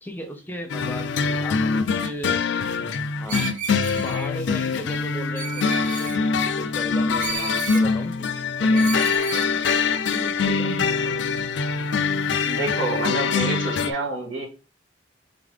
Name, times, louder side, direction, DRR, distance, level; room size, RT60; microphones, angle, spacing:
voice 1, 0.0-2.4 3.1-3.5 4.0-6.3 6.6-9.6 10.1-11.2, equal, 10° left, 5 dB, 0.7 m, -36 dB
sound 1, 0.7-13.9, left 4 dB, 65° left, 0.4 m, -23 dB
Screech, 3.3-4.3 5.4-6.2 7.2-7.9 8.7-9.5, right 7 dB, 45° right, 0.5 m, -33 dB
voice 2, 12.4-14.5, right 2 dB, 85° right, 1 dB, 1.6 m, -28 dB
3.7 x 3.4 x 3.5 m, 0.31 s
head